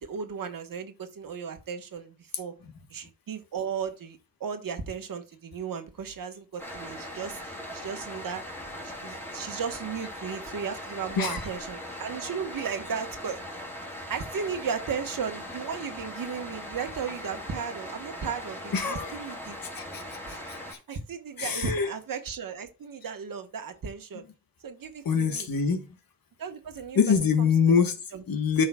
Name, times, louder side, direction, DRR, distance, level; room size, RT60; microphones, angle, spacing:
voice 1, 0.0-2.5 2.9-8.4 8.8-13.7 14.1-19.6 20.3-20.4 20.9-24.2 24.6-25.5 26.4-27.5 28.1-28.2, right 6 dB, 75° right, 1.3 m, -35 dB
sound 1, 6.6-20.7, left 1 dB, 5° left, 2.5 m, -40 dB
voice 2, 18.7-19.1 19.8-20.0 21.4-21.9 25.0-25.8 27.0-27.9 28.3-28.7, left 6 dB, 90° left, 1.5 m, -24 dB
13.5 x 5.5 x 2.3 m
wide cardioid pair, 155°, 34 cm